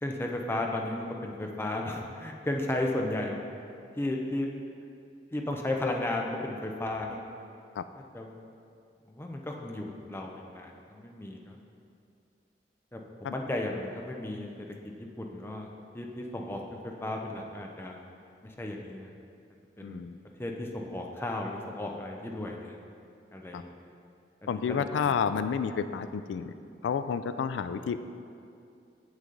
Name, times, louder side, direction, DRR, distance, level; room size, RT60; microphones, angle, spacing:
voice 1, 0.0-3.6 4.0-4.5 5.3-7.2 8.1-8.4 9.1-11.6 12.9-14.5 15.0-15.7 15.9-18.0 18.4-19.1 19.8-20.0 20.4-22.8 23.3-23.7 24.4-25.1, left 1 dB, 15° left, 1 dB, 0.5 m, -34 dB
voice 2, 19.8-20.2 23.5-23.6 24.5-26.5 26.8-28.0, left 6 dB, 85° left, 12 dB, 0.3 m, -30 dB
7.2 x 6.4 x 3.8 m, 2.5 s
head